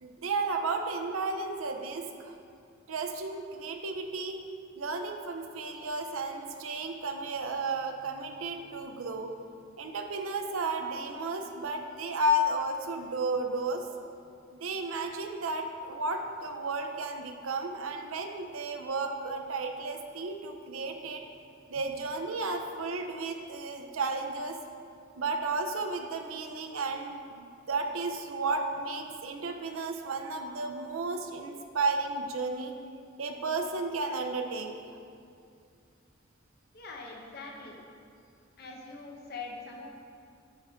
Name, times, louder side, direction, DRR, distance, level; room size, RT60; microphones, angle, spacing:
voice 1, 0.0-2.3 2.9-4.4 4.8-9.3 9.8-13.9 14.5-21.2 21.7-24.6 25.2-32.7 33.2-34.7, right 2 dB, 90° right, 5 dB, 0.6 m, -33 dB
voice 2, 36.7-37.8 38.6-39.9, left 3 dB, 50° left, 0 dB, 0.9 m, -43 dB
7.7 x 3.6 x 5.6 m, 2.4 s
head